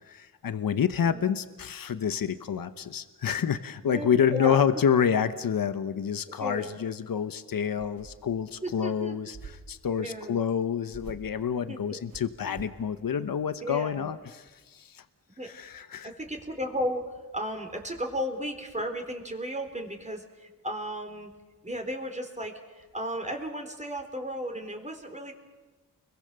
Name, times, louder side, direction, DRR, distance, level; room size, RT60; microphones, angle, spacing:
voice 1, 0.1-15.0 15.4-16.1, left 8 dB, 80° left, 11 dB, 1.1 m, -28 dB
voice 2, 1.0-1.3 3.9-4.7 6.4-6.8 8.6-9.2 10.0-10.4 11.7-12.0 13.1-13.3 13.6-14.1 15.4-15.5 16.0-17.1 17.3-21.3 21.6-25.3, equal, 20° right, 3 dB, 3.9 m, -34 dB
sound 1, 7.8-8.4 9.3-9.8 10.9-11.4 12.1-12.8, right 4 dB, 90° right, 2.6 m, -46 dB
29.5 x 22.5 x 6.8 m, 1.3 s
wide cardioid pair, 80°, 34 cm